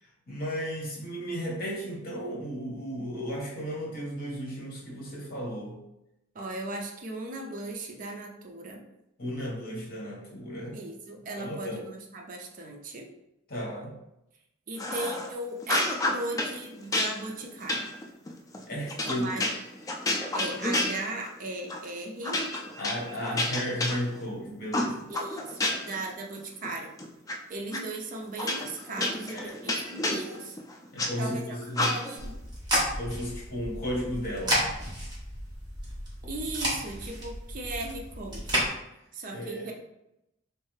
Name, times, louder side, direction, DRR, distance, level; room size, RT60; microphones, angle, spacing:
voice 1, 0.0-5.7 9.2-10.8 11.4-11.8 13.5-14.0 18.7-19.2 22.8-25.0 29.3-29.5 30.9-31.9 33.0-34.6 39.3-39.7, equal, 50° left, -2 dB, 1.2 m, -34 dB
voice 2, 6.3-8.8 10.7-13.1 14.7-17.9 19.2-19.5 20.3-22.4 25.1-26.9 27.5-30.6 31.2-32.4 36.3-38.6 39.1-39.7, right 2 dB, 40° right, 1 dB, 0.5 m, -37 dB
sound 1, 14.8-15.3 15.6-16.5 16.9-21.4 21.7-21.9 22.2-24.3 24.7-26.0 26.4-27.3 27.7-27.8 28.4-31.1 31.7-32.3, left 2 dB, 15° left, 0.4 m, -30 dB
sound 2, 32.2-38.7, equal, 20° right, 1.2 m, -32 dB
3.3 x 3.2 x 3.2 m, 0.87 s
head